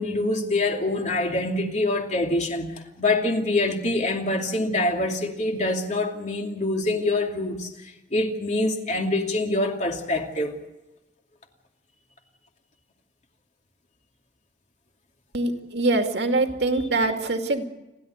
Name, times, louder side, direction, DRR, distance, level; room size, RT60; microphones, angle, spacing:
voice 1, 0.0-7.7 8.1-10.6 16.7-16.9, left 2 dB, 45° left, 2.7 m, -25 dB
voice 2, 15.3-17.6, right 2 dB, 75° right, 2.3 m, -24 dB
29.5 x 12.0 x 8.0 m
head